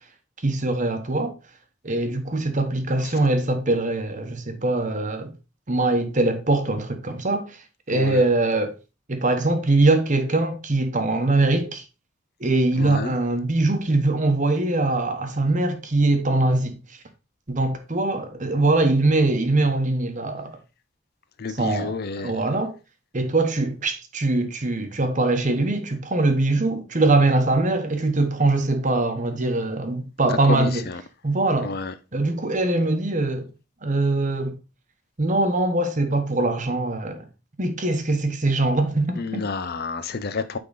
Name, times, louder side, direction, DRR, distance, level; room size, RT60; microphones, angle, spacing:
voice 1, 0.4-1.3 1.8-5.3 5.7-7.5 7.9-8.7 9.1-11.8 12.4-16.7 17.5-20.5 21.6-21.9 22.2-22.7 23.1-30.8 31.2-31.7 32.1-33.5 33.8-34.6 35.2-37.2 37.6-39.5, right 2 dB, 35° right, 1.1 m, -22 dB
voice 2, 7.9-8.3 12.8-13.2 21.4-22.5 30.4-31.0 31.6-31.9 39.2-40.6, left 4 dB, 50° left, 0.6 m, -30 dB
8.6 x 3.8 x 4.0 m
head